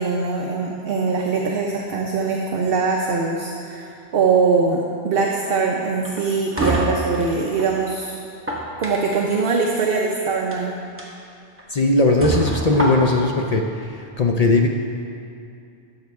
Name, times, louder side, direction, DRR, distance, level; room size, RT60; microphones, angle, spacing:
voice 1, 0.0-8.2 8.8-10.8, right 4 dB, 60° right, 0 dB, 0.8 m, -22 dB
sound 1, 6.0-7.7 8.3-9.4 10.3-10.6 11.0-11.1 11.6-11.7 12.2-13.3, right 1 dB, 10° right, 1.1 m, -26 dB
voice 2, 11.7-14.7, left 2 dB, 50° left, 2 dB, 0.5 m, -19 dB
12.0 x 6.6 x 3.5 m, 2.5 s
omnidirectional pair, 1.2 m